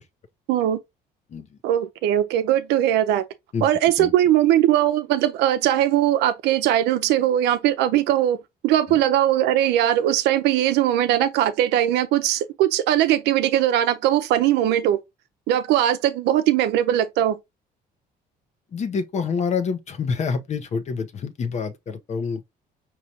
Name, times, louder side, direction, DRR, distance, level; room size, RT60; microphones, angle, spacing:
voice 1, 0.5-0.8 1.6-3.2 3.6-8.4 8.6-15.0 15.5-17.4, right 12 dB, 85° right, 0.7 m, -20 dB
voice 2, 18.7-22.5, left 5 dB, 40° left, 0.8 m, -27 dB
5.1 x 2.9 x 2.8 m
cardioid pair, 110°, 17 cm